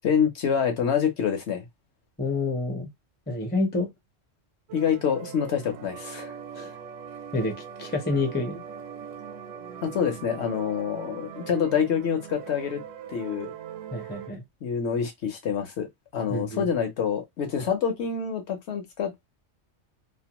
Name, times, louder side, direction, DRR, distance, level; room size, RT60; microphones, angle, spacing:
voice 1, 0.0-1.6 4.7-6.3 9.8-12.8 13.1-13.5 14.6-19.3, left 7 dB, 65° left, 1.0 m, -26 dB
voice 2, 2.2-2.9 3.3-3.9 6.6-6.7 7.3-8.6 13.9-14.4 16.3-16.7, left 2 dB, 10° left, 0.5 m, -28 dB
sound 1, 4.7-14.3, right 8 dB, 85° right, 0.9 m, -41 dB
2.5 x 2.1 x 2.9 m
omnidirectional pair, 1.3 m